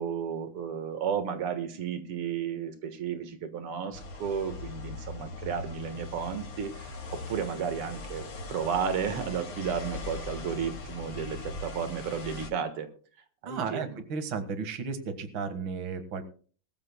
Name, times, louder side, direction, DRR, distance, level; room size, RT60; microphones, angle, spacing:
voice 1, 0.0-12.9 13.4-14.0, right 7 dB, 85° right, 9 dB, 2.4 m, -33 dB
sound 1, 3.9-12.5, left 3 dB, 85° left, 3.0 m, -40 dB
voice 2, 13.5-16.2, right 5 dB, 60° right, 9 dB, 2.4 m, -34 dB
22.0 x 14.0 x 2.2 m, 0.41 s
omnidirectional pair, 2.4 m